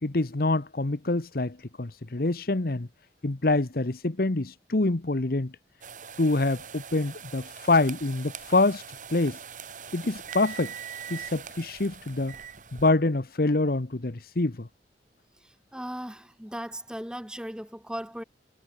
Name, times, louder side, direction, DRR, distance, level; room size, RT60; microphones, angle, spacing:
voice 1, 0.0-2.9 3.2-5.5 6.2-8.8 9.1-9.4 9.9-10.7 11.1-12.3 12.7-14.7, left 2 dB, 55° left, 1.1 m, -26 dB
sound 1, 5.8-12.9, right 7 dB, 45° right, 2.1 m, -42 dB
voice 2, 15.7-18.2, equal, 5° right, 2.4 m, -37 dB
head